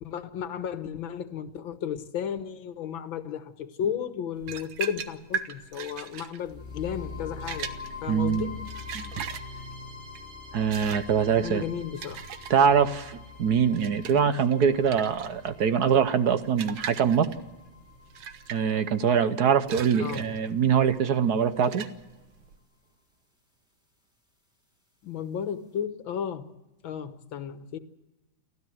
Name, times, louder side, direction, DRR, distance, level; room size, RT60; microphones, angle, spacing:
voice 1, 0.0-7.7 8.0-8.6 11.3-12.2 14.1-14.4 20.0-20.4 25.0-26.5 26.8-27.8, left 8 dB, 85° left, 11 dB, 2.0 m, -34 dB
sound 1, 4.4-22.6, right 7 dB, 80° right, 1.9 m, -40 dB
sound 2, 6.5-20.5, left 4 dB, ahead, 4.1 m, -44 dB
voice 2, 8.1-8.5 8.9-9.1 10.5-11.6 12.5-17.3 18.5-21.9, right 7 dB, 60° right, 11 dB, 1.3 m, -23 dB
29.0 x 13.0 x 7.6 m, 1.1 s
omnidirectional pair, 2.1 m